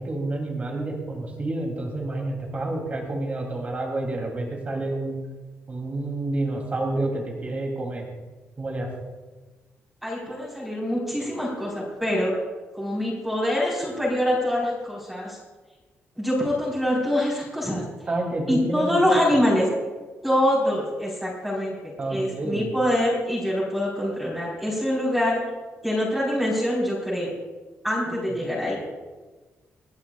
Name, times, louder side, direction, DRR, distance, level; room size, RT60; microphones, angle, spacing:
voice 1, 0.0-5.2 5.7-8.1 8.6-8.9 18.1-19.3 22.0-22.7 28.1-28.5, right 2 dB, 30° right, 0 dB, 3.2 m, -29 dB
voice 2, 10.0-12.3 12.7-15.4 16.2-17.8 18.5-19.7 20.2-25.4 25.8-27.3 27.8-28.7, left 1 dB, 5° right, -7 dB, 4.6 m, -25 dB
28.0 x 11.5 x 2.5 m, 1.3 s
wide cardioid pair, 165°, 5 cm